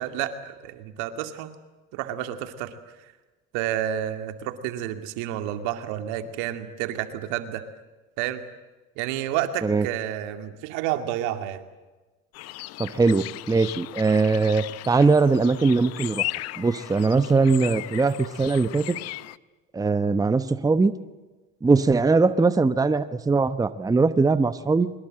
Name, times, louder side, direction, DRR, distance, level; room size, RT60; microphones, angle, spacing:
voice 1, 0.0-1.5 1.9-2.7 3.0-3.1 3.5-7.6 8.2-8.4 9.0-11.6, right 11 dB, 80° right, 8 dB, 2.3 m, -30 dB
sound 1, 12.3-19.4, left 17 dB, 60° left, 0.7 m, -36 dB
voice 2, 12.8-16.3 16.6-19.0 19.7-20.9 21.6-24.9, right 4 dB, 10° right, 13 dB, 0.9 m, -21 dB
23.5 x 21.5 x 7.7 m, 1.2 s
supercardioid pair, 105°, 29 cm